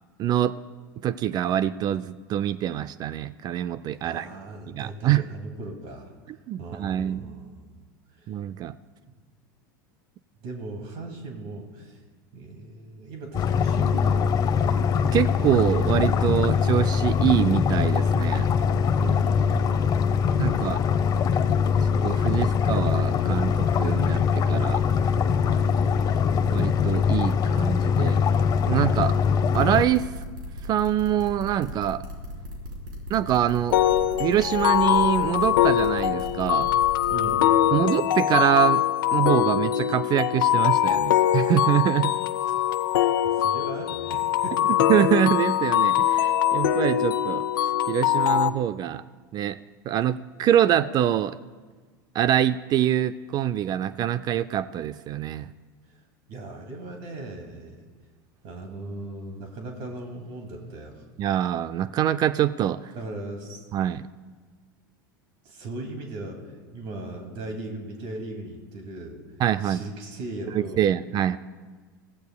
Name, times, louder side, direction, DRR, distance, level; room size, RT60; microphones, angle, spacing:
voice 1, 0.2-0.5 1.0-4.3 4.7-5.3 6.5-7.3 8.3-8.7 15.1-18.5 20.4-20.8 22.0-24.8 26.5-28.2 28.7-29.2 29.5-30.1 30.6-32.0 33.1-33.8 34.2-36.7 37.7-38.8 39.1-42.2 44.9-47.4 47.9-49.0 49.3-49.6 49.9-51.4 52.1-55.5 61.2-62.9 63.7-64.0 69.4-69.8 70.5-71.4, right 11 dB, 40° right, 14 dB, 0.4 m, -24 dB
voice 2, 4.0-6.1 6.6-7.9 8.1-8.3 9.1-9.2 10.4-12.0 12.3-14.8 18.9-20.7 37.1-37.8 42.4-44.8 55.9-56.0 56.3-57.8 58.4-61.0 62.9-63.6 65.4-69.2 69.6-70.9, right 2 dB, 55° right, 2 dB, 2.5 m, -38 dB
sound 1, 13.3-29.8, left 6 dB, 35° left, 0.8 m, -22 dB
sound 2, 29.5-37.3, left 1 dB, 85° right, 4.2 m, -37 dB
sound 3, 33.7-48.5, left 12 dB, 80° left, 0.7 m, -22 dB
23.0 x 15.5 x 2.3 m, 1.4 s
hypercardioid pair, 100°, 11 cm